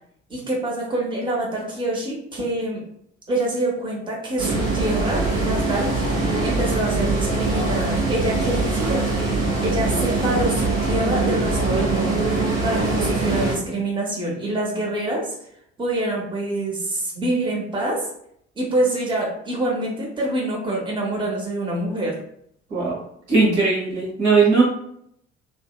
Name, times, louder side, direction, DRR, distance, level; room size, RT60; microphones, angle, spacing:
voice 1, 0.3-2.8 3.3-5.9 6.4-9.0 9.6-12.2 12.6-15.3 15.8-18.1 18.6-22.1, right 1 dB, 15° right, -3 dB, 0.8 m, -25 dB
sound 1, 4.4-13.5, right 3 dB, 50° right, 0.8 m, -22 dB
voice 2, 23.3-24.6, right 4 dB, 70° right, -6 dB, 1.1 m, -18 dB
2.6 x 2.1 x 2.2 m, 0.70 s
figure-of-eight pair, 50°, 35 cm